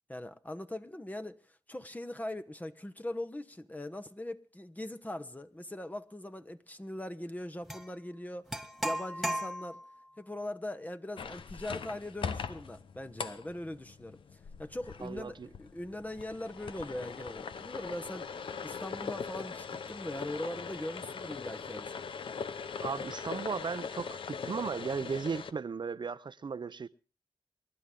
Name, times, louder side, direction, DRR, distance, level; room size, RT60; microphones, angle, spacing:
voice 1, 0.1-1.4 1.7-8.5 8.8-9.8 10.2-14.2 14.6-21.9, left 1 dB, 20° left, 1.1 m, -41 dB
sound 1, 7.7-7.9 8.5-10.0, right 1 dB, ahead, 2.3 m, -35 dB
sound 2, 11.2-25.5, left 6 dB, 85° left, 0.8 m, -41 dB
voice 2, 15.0-15.5 22.8-26.9, right 5 dB, 65° right, 0.7 m, -36 dB
28.0 x 11.5 x 3.8 m
cardioid pair, 45°, 9 cm